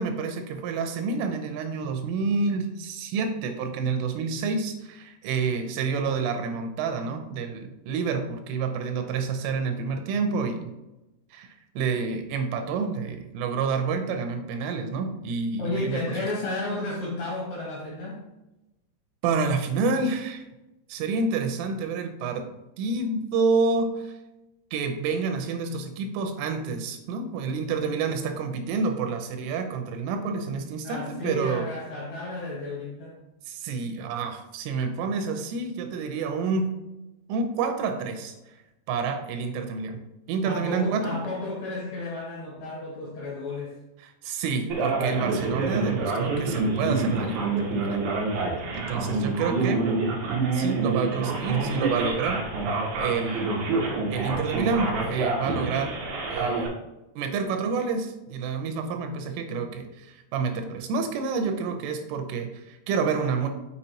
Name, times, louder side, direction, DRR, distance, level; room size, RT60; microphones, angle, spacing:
voice 1, 0.0-10.7 11.3-16.0 19.2-20.5 20.9-22.5 22.8-24.1 24.7-31.7 33.5-36.7 37.3-38.3 38.9-40.0 40.3-41.2 44.0-48.0 48.7-49.9 50.5-52.4 53.0-53.6 54.1-56.0 56.3-56.7 57.2-63.5, right 4 dB, 90° right, 6 dB, 3.4 m, -28 dB
voice 2, 15.6-18.2 30.8-33.2 40.4-43.8, left 2 dB, 60° left, -4 dB, 2.6 m, -32 dB
Male speech man speaking, 44.7-56.7, right 3 dB, 70° right, 1.8 m, -27 dB
6.7 x 6.6 x 2.9 m, 0.98 s
omnidirectional pair, 5.6 m